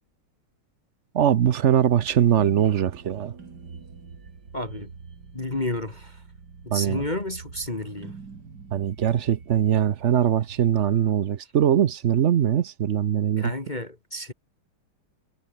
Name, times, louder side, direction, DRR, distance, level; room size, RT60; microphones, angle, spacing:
voice 1, 1.1-3.3 6.7-7.0 8.7-13.5, right 9 dB, 90° right, 0.6 m, -21 dB
sound 1, 1.8-11.1, right 5 dB, 50° right, 3.2 m, -45 dB
voice 2, 4.5-4.9 5.3-6.2 6.6-8.2 13.4-14.3, left 1 dB, 20° left, 1.8 m, -31 dB
omnidirectional pair, 2.3 m